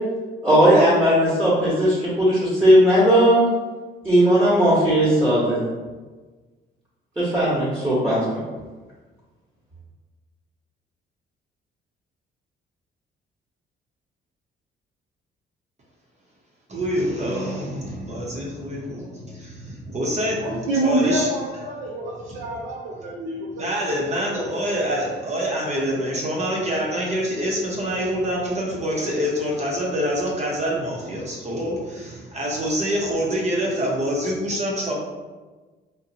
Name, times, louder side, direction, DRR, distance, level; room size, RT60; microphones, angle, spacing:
voice 1, 0.4-3.4 4.0-5.6 7.2-8.2, equal, 10° right, -10 dB, 1.1 m, -17 dB
voice 2, 16.7-20.4 20.8-21.3 23.6-34.9, equal, 35° right, -3 dB, 0.8 m, -26 dB
voice 3, 20.4-23.7 24.1-24.6, right 1 dB, 90° right, -4 dB, 0.5 m, -26 dB
2.6 x 2.2 x 2.7 m, 1.3 s
cardioid pair, 90°, 20 cm